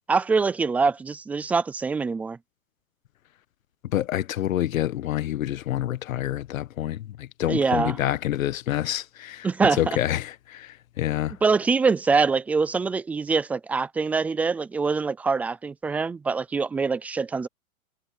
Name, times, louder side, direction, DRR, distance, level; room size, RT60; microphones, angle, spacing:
voice 1, 0.1-2.4 7.5-8.0 9.4-10.0 11.4-17.5, right 4 dB, 5° right, 0.3 m, -24 dB
voice 2, 3.9-9.5 9.8-11.3, left 13 dB, 70° left, 1.5 m, -27 dB
hypercardioid pair, 135°, 42 cm